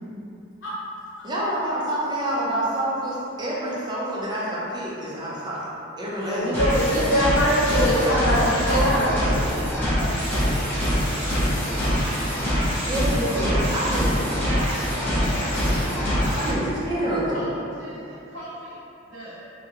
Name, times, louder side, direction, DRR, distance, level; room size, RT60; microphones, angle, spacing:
voice 1, 1.2-5.7 6.0-6.6 8.9-9.0 12.9-14.1 16.3-17.4, right 1 dB, 20° right, -7 dB, 0.4 m, -27 dB
voice 2, 6.2-9.3, equal, 75° left, -10 dB, 0.9 m, -22 dB
sound 1, 6.5-16.5, equal, 10° left, 0.7 m, -24 dB
voice 3, 8.0-8.9 9.2-10.8 11.2-12.6 13.6-17.5 17.8-18.0 18.3-18.8 19.1-19.4, equal, 85° right, -8 dB, 0.8 m, -38 dB
2.7 x 2.0 x 2.4 m, 2.7 s
head